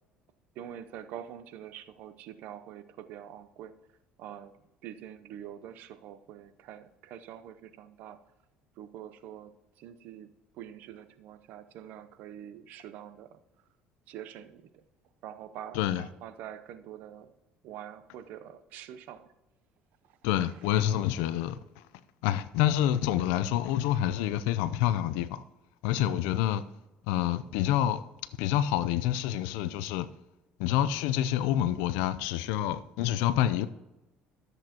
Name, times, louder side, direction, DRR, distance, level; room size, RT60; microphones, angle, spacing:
voice 1, 0.6-3.8 4.2-4.5 4.8-8.2 8.8-13.4 14.1-14.8 15.2-17.3 17.6-19.3, right 10 dB, 70° right, 0.7 m, -45 dB
voice 2, 15.7-16.0 20.2-21.6 22.2-25.4 25.8-26.6 27.1-28.0 28.4-30.1 30.6-33.7, left 11 dB, 85° left, 0.5 m, -27 dB
13.0 x 7.9 x 2.9 m
supercardioid pair, 105°, 3 cm